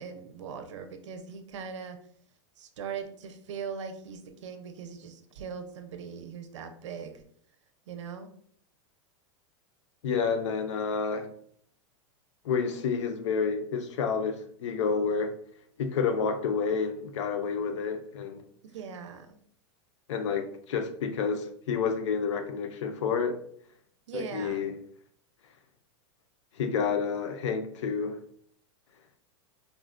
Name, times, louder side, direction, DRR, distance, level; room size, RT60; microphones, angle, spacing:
voice 1, 0.0-2.0 2.6-7.2 7.9-8.3 18.7-19.4 24.1-24.6, right 6 dB, 90° right, 0.5 m, -40 dB
voice 2, 10.0-11.3 12.4-15.3 15.8-18.4 20.1-23.4 24.1-24.7 26.6-28.2, left 5 dB, 90° left, 0.5 m, -29 dB
3.7 x 2.1 x 2.4 m
supercardioid pair, 150°, 15 cm